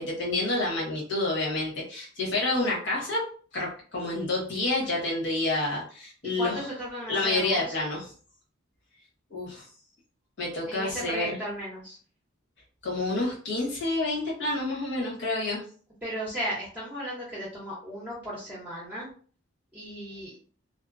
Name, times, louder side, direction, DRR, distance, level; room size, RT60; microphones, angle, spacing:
voice 1, 0.0-3.2 3.5-6.7 7.1-8.1 9.3-9.6 10.4-11.4 12.8-15.6, left 2 dB, 60° left, -4 dB, 1.2 m, -28 dB
voice 2, 6.4-7.8 10.7-12.0 16.0-19.1 19.7-20.4, equal, 5° right, -7 dB, 0.7 m, -35 dB
2.7 x 2.0 x 2.5 m, 0.42 s
head